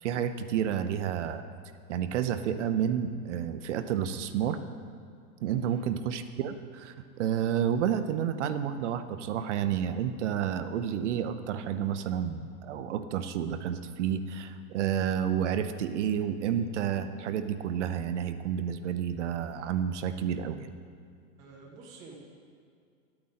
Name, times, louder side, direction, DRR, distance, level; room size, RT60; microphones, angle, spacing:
voice 1, 0.0-1.4 1.9-4.6 5.4-20.7, right 9 dB, 50° right, 10 dB, 0.6 m, -30 dB
voice 2, 21.4-22.2, right 4 dB, 10° right, -3 dB, 0.4 m, -49 dB
12.0 x 8.7 x 4.2 m, 2.3 s
supercardioid pair, 160°, 46 cm